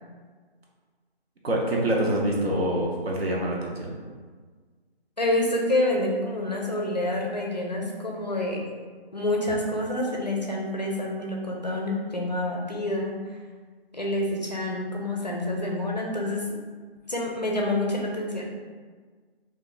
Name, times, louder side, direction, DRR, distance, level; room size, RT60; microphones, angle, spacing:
voice 1, 1.4-3.9, right 1 dB, 75° right, -2 dB, 0.9 m, -25 dB
voice 2, 5.2-8.6 9.1-13.2 13.9-16.4 17.1-18.5, left 1 dB, 45° left, -1 dB, 0.4 m, -27 dB
2.4 x 2.4 x 3.8 m, 1.5 s
figure-of-eight pair, 175°, 31 cm